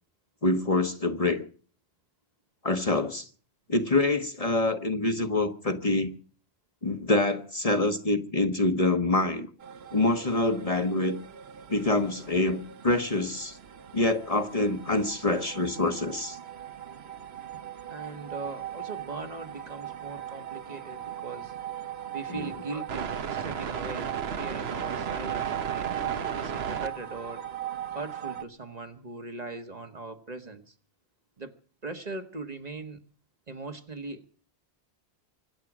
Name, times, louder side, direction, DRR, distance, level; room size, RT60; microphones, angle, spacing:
voice 1, 0.4-1.5 2.6-3.3 3.7-6.1 6.8-9.5 9.9-11.2 11.7-13.6 13.9-16.4 22.3-22.5, left 2 dB, 35° left, 1.1 m, -26 dB
sound 1, 9.6-28.4, right 9 dB, 75° right, 1.2 m, -37 dB
voice 2, 17.9-21.5 22.1-27.4 27.9-30.7 31.4-31.5 31.8-33.0 33.5-34.3, right 3 dB, 40° right, 1.4 m, -40 dB
25.0 x 8.3 x 6.1 m
omnidirectional pair, 1.1 m